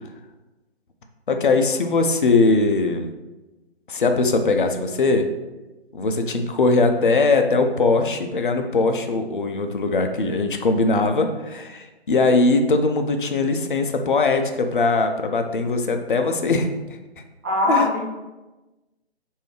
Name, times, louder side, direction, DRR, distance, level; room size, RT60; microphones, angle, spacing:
voice 1, 1.3-3.1 3.9-5.3 5.9-16.7 17.7-17.9, left 3 dB, 50° left, 6 dB, 0.5 m, -20 dB
voice 2, 17.4-18.0, left 1 dB, 15° right, -6 dB, 0.6 m, -20 dB
4.9 x 2.7 x 3.1 m, 1.1 s
figure-of-eight pair, 145°, 33 cm